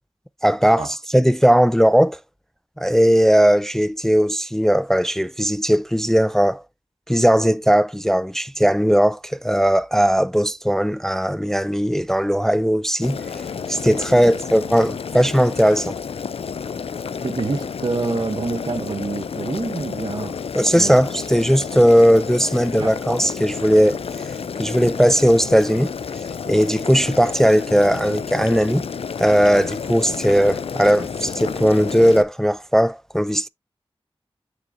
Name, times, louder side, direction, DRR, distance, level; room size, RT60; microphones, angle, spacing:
voice 1, 0.4-0.9 1.1-2.2 2.8-6.6 7.1-13.2 13.7-16.0 20.5-24.0 24.6-25.9 26.5-28.9 29.2-33.5, equal, 5° left, 0.3 m, -18 dB
Boiling, 13.0-32.2, left 6 dB, 75° left, 0.5 m, -30 dB
voice 2, 17.2-20.4 20.7-20.9 22.8-22.9, right 3 dB, 50° right, 0.9 m, -26 dB
7.1 x 6.5 x 2.6 m
cardioid pair, 45°, 10 cm